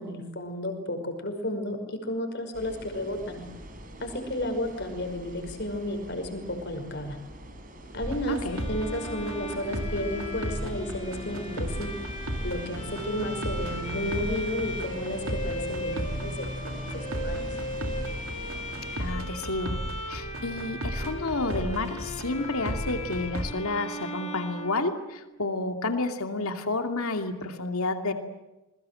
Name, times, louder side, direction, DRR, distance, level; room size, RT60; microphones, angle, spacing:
voice 1, 0.0-3.4 4.0-7.2 7.9-8.4 8.7-11.9 12.4-17.5, left 1 dB, 50° left, 6 dB, 5.6 m, -32 dB
sound 1, 2.5-19.1, right 1 dB, 40° right, 4.7 m, -44 dB
sound 2, 8.0-23.5, right 1 dB, 70° right, 2.5 m, -35 dB
voice 2, 8.3-8.6 19.0-19.8 20.0-28.1, left 2 dB, 75° left, 5 dB, 2.6 m, -30 dB
Bowed string instrument, 8.5-25.5, left 1 dB, 30° left, 6.1 m, -38 dB
28.0 x 22.0 x 7.8 m, 0.98 s
head